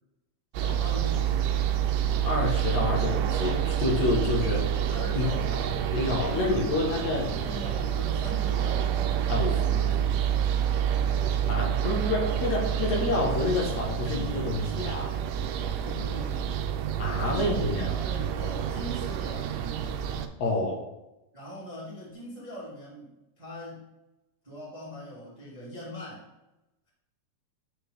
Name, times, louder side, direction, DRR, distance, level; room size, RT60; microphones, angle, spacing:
sound 1, 0.5-20.3, right 9 dB, 90° right, 2.3 m, -28 dB
voice 1, 0.6-1.6 4.4-5.8 6.3-8.9 9.6-10.4 15.5-16.7 17.3-19.5 21.3-23.1 23.4-23.9 24.4-26.3, left 1 dB, 30° right, -7 dB, 0.7 m, -41 dB
voice 2, 2.2-4.6 5.1-5.3 5.9-7.3 9.3-9.6 11.5-15.2 17.0-18.0 20.4-20.8, left 2 dB, 65° left, -3 dB, 2.2 m, -28 dB
9.8 x 3.4 x 3.1 m, 0.96 s
omnidirectional pair, 3.9 m